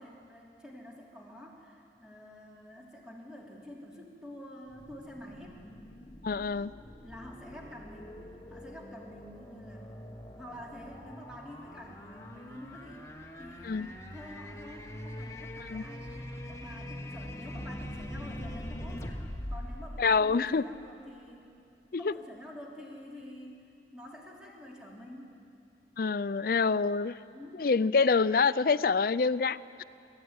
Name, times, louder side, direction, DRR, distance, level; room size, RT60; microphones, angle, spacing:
voice 1, 0.0-5.6 7.0-9.9 10.3-13.1 13.4-19.1 19.5-21.5 21.9-25.4 27.3-27.7, left 1 dB, 5° right, -3 dB, 3.2 m, -48 dB
sound 1, 4.7-20.9, left 1 dB, 15° left, 1.3 m, -43 dB
voice 2, 6.2-6.7 13.6-13.9 15.7-15.8 20.0-20.6 21.9-22.1 26.0-27.2 27.6-29.8, left 4 dB, 55° left, 14 dB, 0.5 m, -26 dB
25.5 x 14.5 x 9.5 m, 2.6 s
head